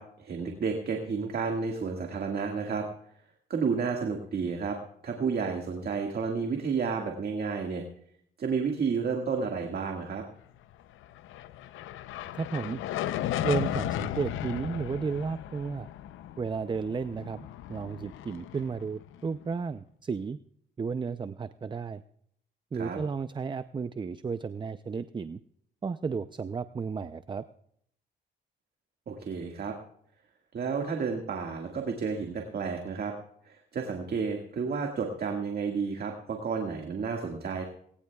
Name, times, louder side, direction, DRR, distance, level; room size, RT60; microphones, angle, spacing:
voice 1, 0.0-2.9 3.5-4.8 5.0-7.8 8.4-10.2 22.7-23.0 29.1-29.8 30.5-33.1 33.5-37.6, right 5 dB, 50° right, 2 dB, 1.9 m, -31 dB
sound 1, 11.0-19.4, left 12 dB, 85° left, 0.6 m, -35 dB
voice 2, 12.3-12.8 13.4-15.9 16.4-20.4 20.8-22.0 22.7-25.4 25.8-27.4, right 5 dB, 25° right, 13 dB, 0.5 m, -33 dB
19.0 x 18.0 x 2.3 m, 0.67 s
cardioid pair, 90°, 20 cm